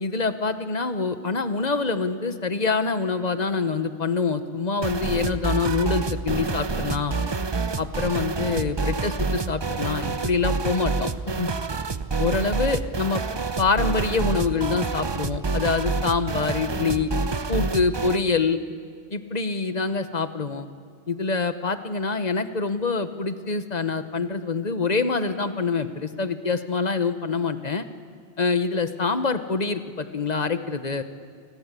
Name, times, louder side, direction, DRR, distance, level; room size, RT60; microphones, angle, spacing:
voice 1, 0.0-7.2 7.8-11.1 11.3-11.5 12.2-13.2 13.6-17.1 17.5-18.6 19.1-20.7 21.1-27.9 28.4-31.0, left 4 dB, 40° left, 10 dB, 1.2 m, -25 dB
sound 1, 4.8-18.2, right 4 dB, 30° right, 0.6 m, -28 dB
28.5 x 20.5 x 8.4 m, 2.1 s
omnidirectional pair, 1.1 m